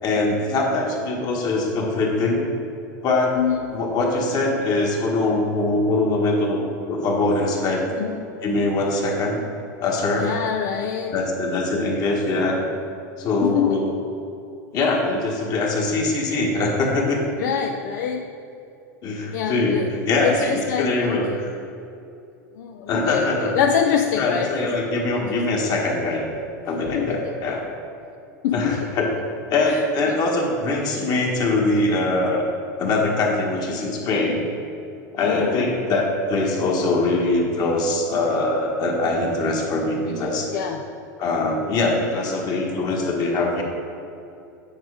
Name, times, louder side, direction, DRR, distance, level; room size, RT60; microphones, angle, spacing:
voice 1, 0.0-2.4 3.0-3.4 3.7-6.6 6.9-7.9 8.4-9.4 9.8-10.3 11.1-12.6 13.2-13.9 14.7-17.2 19.0-21.5 22.9-23.6 24.2-26.2 26.7-27.6 28.5-29.1 29.5-32.5 32.8-34.4 35.1-40.5 41.2-43.6, left 2 dB, 40° left, 0 dB, 1.6 m, -22 dB
voice 2, 3.4-3.8 8.0-8.3 10.2-11.2 13.4-13.9 17.4-18.3 19.3-19.9 20.2-21.2 22.6-24.7 25.1-25.4 26.9-27.3 28.4-28.8 29.7-29.8 30.1-30.2 35.2-35.7 40.5-40.8, left 8 dB, 70° left, 3 dB, 0.5 m, -25 dB
9.1 x 4.7 x 4.9 m, 2.7 s
supercardioid pair, 115°, 10 cm